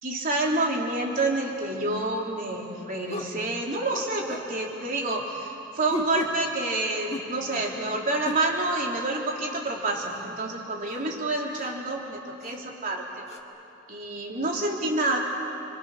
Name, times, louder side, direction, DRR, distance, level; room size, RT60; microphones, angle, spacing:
voice 1, 0.0-13.3 13.9-15.2, right 2 dB, 45° right, -1 dB, 3.4 m, -28 dB
sound 1, 2.0-2.2 3.1-3.4 3.9-4.5 5.9-6.4 7.1-7.7 8.2-8.5 10.1-10.2 10.9-11.0 11.6-11.7 12.4-12.6 13.3-13.4, left 1 dB, 35° left, 1.9 m, -36 dB
29.5 x 24.5 x 6.6 m, 2.8 s
head